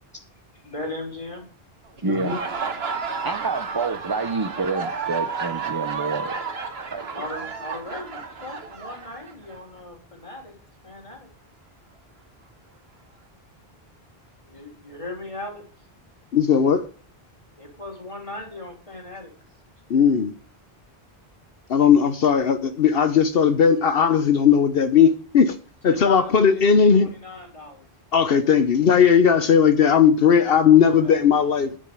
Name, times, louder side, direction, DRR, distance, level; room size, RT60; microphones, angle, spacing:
voice 1, 0.6-1.4 3.1-3.5 7.1-10.5 10.8-11.3 14.4-15.6 17.6-19.3 25.8-27.8 29.3-29.5 30.6-31.5, left 2 dB, 30° left, 3.3 m, -37 dB
voice 2, 2.0-2.4 3.2-6.4 6.9-7.2, right 3 dB, 25° right, 0.7 m, -28 dB
Laughter, 2.0-9.6, right 5 dB, 75° right, 1.5 m, -31 dB
voice 3, 16.3-16.9 19.9-20.3 21.7-25.5 25.8-27.1 28.1-31.7, left 7 dB, 70° left, 1.0 m, -17 dB
9.9 x 5.4 x 6.6 m
omnidirectional pair, 1.0 m